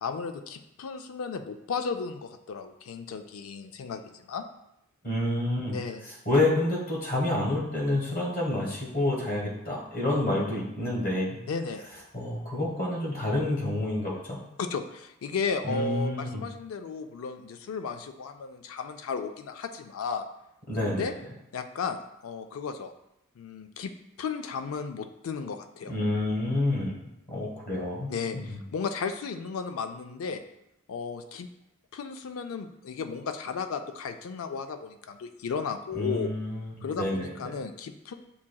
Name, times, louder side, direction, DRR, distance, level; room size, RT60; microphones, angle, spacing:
voice 1, 0.0-4.5 5.7-6.0 11.5-11.8 14.6-20.3 20.8-21.1 21.5-22.9 23.4-23.9 24.2-25.9 28.1-30.4 30.9-31.5 31.9-36.3 36.8-38.1, left 5 dB, 90° left, 8 dB, 0.4 m, -34 dB
voice 2, 5.0-5.8 6.2-11.4 12.1-14.4 15.6-16.4 20.7-21.1 25.9-26.9 27.3-28.6 35.9-37.3, left 1 dB, 45° left, -3 dB, 1.3 m, -28 dB
7.2 x 2.7 x 2.3 m, 0.84 s
head